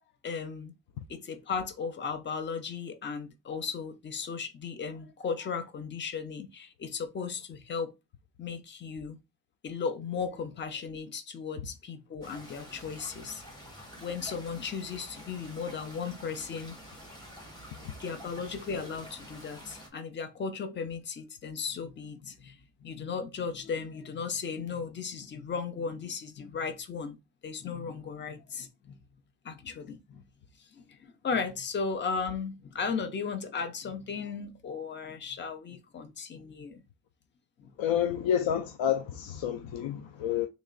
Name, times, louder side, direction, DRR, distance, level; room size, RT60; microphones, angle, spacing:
voice 1, 0.2-0.7 1.1-7.9 8.4-9.2 9.6-13.4 14.0-16.8 18.0-27.2 27.4-29.0 29.4-30.2 30.6-36.8 37.6-37.7, left 5 dB, 25° left, 0.4 m, -36 dB
sound 1, 12.2-19.9, equal, 10° left, 1.2 m, -48 dB
voice 2, 37.8-40.5, left 9 dB, 85° left, 0.6 m, -29 dB
3.2 x 3.0 x 3.7 m
wide cardioid pair, 170°, 44 cm